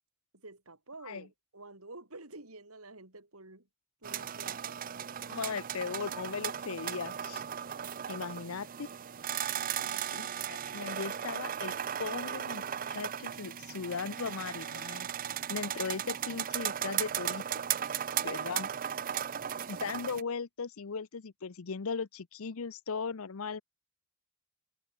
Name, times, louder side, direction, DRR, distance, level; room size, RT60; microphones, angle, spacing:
voice 1, 0.3-3.7 4.0-4.8 9.7-10.2 18.1-18.6, right 2 dB, 80° right, 6.6 m, -50 dB
Creaky Stove, 4.0-20.2, right 9 dB, 40° right, 0.5 m, -36 dB
voice 2, 5.3-7.4 8.1-8.9 10.1-12.6 12.9-15.1 15.5-17.4 18.2-18.7 19.7-23.6, left 5 dB, 70° left, 0.7 m, -38 dB
head